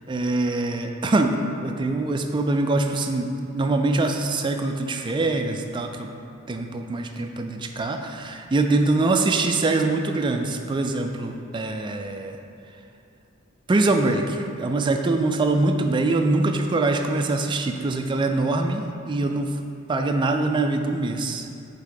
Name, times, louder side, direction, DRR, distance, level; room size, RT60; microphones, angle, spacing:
voice 1, 0.1-1.4 1.6-6.1 6.5-12.4 13.7-19.6 19.9-21.6, right 2 dB, 25° right, 5 dB, 0.3 m, -24 dB
7.7 x 3.7 x 3.8 m, 2.5 s
head